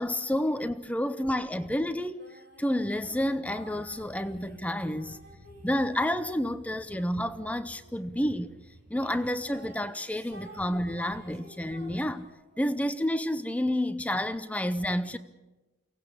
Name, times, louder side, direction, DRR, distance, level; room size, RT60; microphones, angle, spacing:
voice 1, 0.0-2.2 2.6-5.2 5.6-8.5 8.9-12.3 12.6-15.2, left 1 dB, 5° left, 0.7 m, -30 dB
Female singing sacrifice, 2.2-8.4 9.0-12.6, right 1 dB, 50° right, 5.6 m, -53 dB
sound 1, 2.9-9.5, equal, 80° right, 2.1 m, -54 dB
23.5 x 18.0 x 8.5 m
head